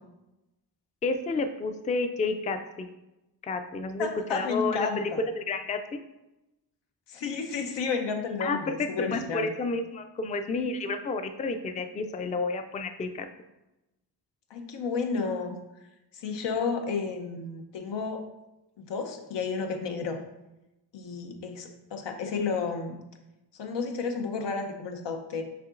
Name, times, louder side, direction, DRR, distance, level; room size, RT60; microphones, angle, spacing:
voice 1, 1.0-2.9 3.4-6.0 8.4-13.3, left 3 dB, 20° left, 8 dB, 0.3 m, -30 dB
voice 2, 4.0-5.2 7.1-9.5 14.5-15.6 16.1-18.2 18.8-20.2 20.9-22.9 23.5-25.4, left 4 dB, 90° left, 4 dB, 0.8 m, -32 dB
5.8 x 3.7 x 2.5 m, 0.96 s
cardioid pair, 70°, 41 cm